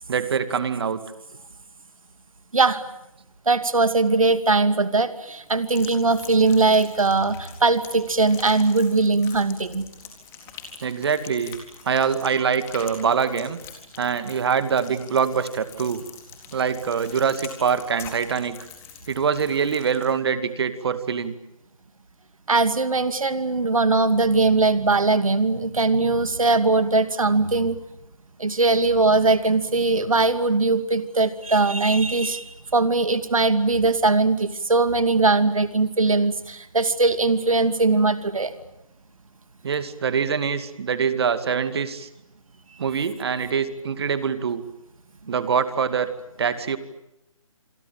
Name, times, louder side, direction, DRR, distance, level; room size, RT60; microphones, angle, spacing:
voice 1, 0.1-1.0 10.8-11.6 11.8-13.6 14.0-16.0 16.5-18.6 19.1-21.3 39.6-42.1 42.8-44.6 45.3-46.1 46.4-46.8, right 6 dB, 45° right, 12 dB, 2.3 m, -24 dB
voice 2, 2.5-2.9 3.5-9.8 22.5-27.8 28.4-38.5, right 3 dB, 70° right, 11 dB, 2.5 m, -20 dB
sound 1, 5.5-20.1, left 7 dB, 15° left, 4.0 m, -44 dB
27.0 x 23.5 x 8.9 m, 0.88 s
figure-of-eight pair, 145°, 18 cm